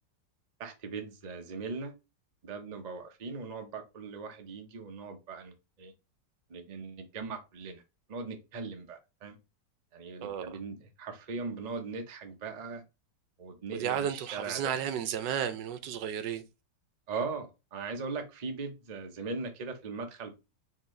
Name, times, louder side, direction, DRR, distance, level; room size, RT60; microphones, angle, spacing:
voice 1, 0.6-1.9 2.4-5.9 6.5-7.8 8.1-9.4 9.9-12.8 13.4-14.7 17.1-20.3, right 4 dB, 35° right, 0.6 m, -39 dB
voice 2, 10.2-10.5 13.7-16.4, right 9 dB, 75° right, 1.3 m, -33 dB
4.6 x 3.6 x 3.1 m
omnidirectional pair, 2.0 m